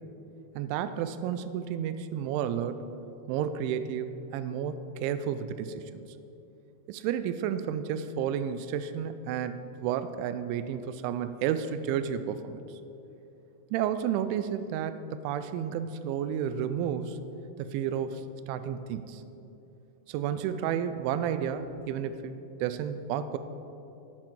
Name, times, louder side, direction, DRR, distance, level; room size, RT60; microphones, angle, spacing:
voice 1, 0.6-2.8 3.3-6.0 6.9-12.6 13.7-17.2 17.6-18.2 18.5-19.2 20.1-23.4, right 8 dB, 85° right, 11 dB, 2.7 m, -31 dB
16.5 x 6.0 x 4.5 m, 2.9 s
omnidirectional pair, 5.7 m